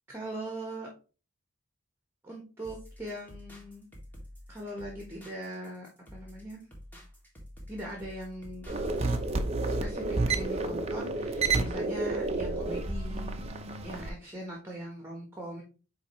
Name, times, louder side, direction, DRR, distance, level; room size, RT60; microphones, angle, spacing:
voice 1, 0.1-0.9 2.2-3.9 4.5-6.6 7.7-8.6 9.0-9.1 9.7-13.4 13.8-15.6, right 1 dB, 10° right, -1 dB, 1.3 m, -41 dB
sound 1, 2.6-9.5, equal, 10° left, 1.8 m, -49 dB
sound 2, 8.7-14.1, right 3 dB, 30° right, 0.7 m, -30 dB
9.0 x 3.4 x 3.1 m, 0.35 s
head